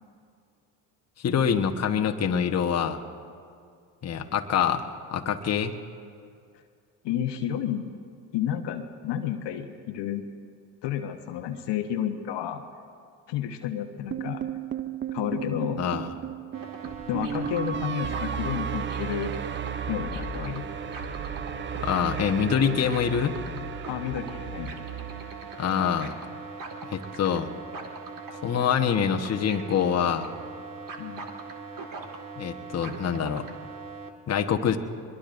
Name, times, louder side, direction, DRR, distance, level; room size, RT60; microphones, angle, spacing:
voice 1, 1.2-3.0 4.0-5.7 15.8-16.1 21.8-23.3 25.6-26.2 26.9-27.5 28.4-30.3 32.4-33.5 34.3-34.8, left 7 dB, 30° left, 4 dB, 1.1 m, -25 dB
voice 2, 7.0-7.9 8.3-10.3 10.8-12.6 13.3-14.4 15.1-15.8 17.1-19.3 19.9-20.6 23.9-24.7 31.0-31.3, left 10 dB, 60° left, 6 dB, 1.1 m, -31 dB
sound 1, 14.1-26.3, right 8 dB, 25° right, 0.5 m, -35 dB
sound 2, 16.5-34.1, right 4 dB, 40° right, 1.8 m, -41 dB
sound 3, 19.5-22.6 22.8-25.4, right 4 dB, 80° right, 1.9 m, -40 dB
22.5 x 22.0 x 2.6 m, 2.3 s
hypercardioid pair, 65°, 48 cm